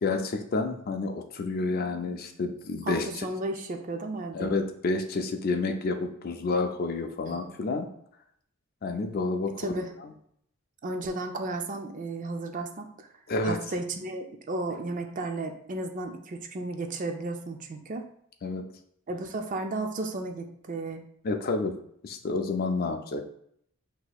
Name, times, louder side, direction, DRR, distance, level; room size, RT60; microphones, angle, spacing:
voice 1, 0.0-3.3 4.3-7.9 8.8-9.5 10.0-10.1 13.3-13.6 18.4-18.7 21.2-21.8 22.0-23.2, left 3 dB, 45° left, 6 dB, 0.4 m, -29 dB
voice 2, 2.8-4.6 7.3-7.4 9.6-9.9 10.8-13.1 13.4-18.1 19.1-21.0, right 2 dB, 40° right, 5 dB, 0.4 m, -34 dB
6.0 x 2.7 x 2.3 m, 0.68 s
head